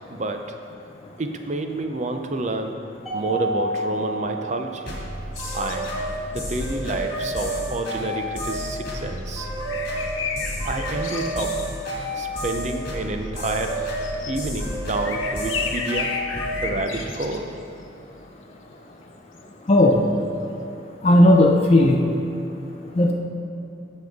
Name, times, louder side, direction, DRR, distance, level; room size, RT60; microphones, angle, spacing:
voice 1, 0.1-0.6 1.2-5.0 5.5-5.9 6.3-9.5 10.6-11.6 12.2-13.9 14.3-16.2 16.6-17.5, right 2 dB, 35° right, 5 dB, 0.5 m, -29 dB
Mallet percussion, 3.1-5.5, right 2 dB, ahead, 1.6 m, -30 dB
sound 1, 4.9-16.7, right 1 dB, 50° left, 2.0 m, -30 dB
sound 2, 5.3-5.9 9.2-11.7 13.4-14.7 15.0-17.4 19.4-19.5 19.8-20.0, left 5 dB, 85° left, 0.9 m, -33 dB
voice 2, 19.7-20.0 21.0-22.0 23.0-23.1, left 1 dB, 30° left, 0 dB, 0.5 m, -15 dB
15.0 x 5.5 x 3.6 m, 2.8 s
head